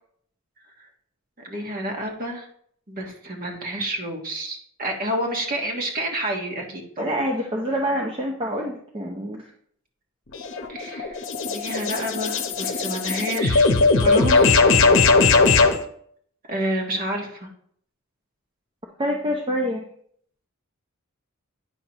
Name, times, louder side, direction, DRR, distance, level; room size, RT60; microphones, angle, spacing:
voice 1, 1.4-2.5 2.9-7.1 10.7-11.2 11.5-13.7 14.0-14.8 15.1-15.5 16.5-17.5, right 1 dB, 45° right, 1 dB, 1.3 m, -29 dB
voice 2, 7.0-9.4 19.0-19.8, equal, 25° right, 0 dB, 0.7 m, -26 dB
sound 1, 10.3-15.8, left 4 dB, 60° left, 0.8 m, -19 dB
9.0 x 5.8 x 2.9 m, 0.64 s
head